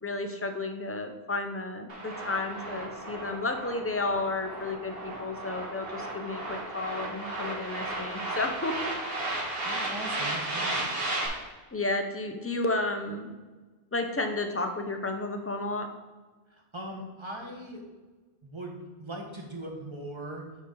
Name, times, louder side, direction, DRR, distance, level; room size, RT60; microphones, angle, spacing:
voice 1, 0.0-8.9 11.7-13.3 13.9-15.9, left 2 dB, 15° left, 5 dB, 0.5 m, -32 dB
sound 1, 1.9-11.3, right 2 dB, 60° right, 1.8 m, -34 dB
voice 2, 9.6-10.9 16.7-17.8 18.4-20.4, right 1 dB, 25° right, 0 dB, 1.2 m, -40 dB
9.2 x 4.1 x 3.9 m, 1.3 s
omnidirectional pair, 1.1 m